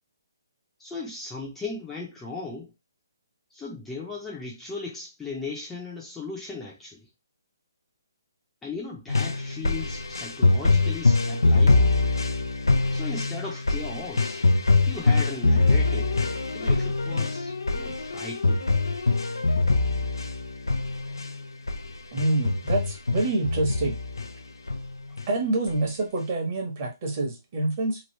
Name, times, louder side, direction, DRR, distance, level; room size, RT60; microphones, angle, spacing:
voice 1, 0.8-2.7 3.5-7.0 8.6-11.9 12.9-14.5 14.9-16.2 16.5-18.6, left 3 dB, 5° left, 0.7 m, -37 dB
sound 1, 9.1-21.3 21.7-21.9 22.2-24.3 24.7-25.2 25.7-25.8, left 3 dB, 90° left, 0.5 m, -23 dB
voice 2, 22.1-24.0 25.3-28.0, right 2 dB, 40° right, 1.1 m, -26 dB
3.1 x 2.5 x 3.1 m
hypercardioid pair, 150°, 2 cm